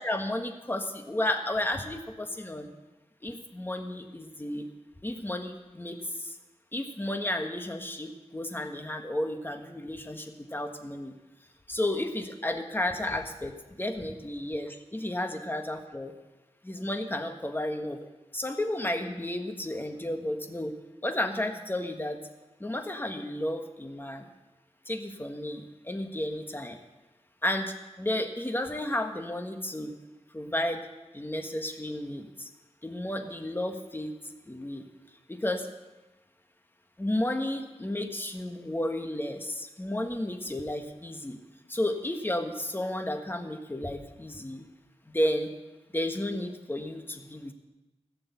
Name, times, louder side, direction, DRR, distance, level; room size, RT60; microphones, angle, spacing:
voice 1, 0.0-2.7 3.2-4.6 5.0-6.4 6.7-11.1 11.7-16.1 16.6-18.0 18.3-20.7 21.0-22.2 22.6-24.3 24.8-26.8 27.4-29.9 30.3-30.8 31.1-32.5 32.8-34.1 34.5-34.8 35.3-35.7 37.0-41.4 41.7-44.7 45.1-45.5 45.9-47.5, left 1 dB, 20° left, 5 dB, 1.5 m, -32 dB
17.0 x 6.8 x 8.3 m, 1.1 s
wide cardioid pair, 75°, 11 cm